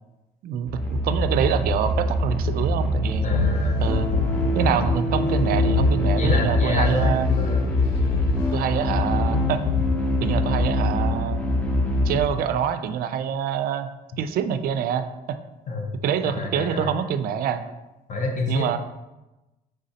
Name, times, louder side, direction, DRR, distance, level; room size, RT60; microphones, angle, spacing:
voice 1, 0.4-3.3 3.8-4.1 4.5-7.3 8.5-9.6 10.2-11.4 12.0-13.9 14.2-15.4 16.0-17.6 18.5-18.8, right 8 dB, 60° right, 10 dB, 0.4 m, -25 dB
sound 1, 0.7-12.2, left 1 dB, 10° left, 0.6 m, -24 dB
sound 2, 3.1-9.9, left 5 dB, 75° left, 0.6 m, -28 dB
voice 2, 3.2-3.8 6.2-7.6 15.7-15.9 16.2-16.9 18.1-18.8, left 3 dB, 50° left, 1 dB, 0.8 m, -28 dB
5.0 x 3.4 x 2.8 m, 1.0 s
cardioid pair, 110°, 17 cm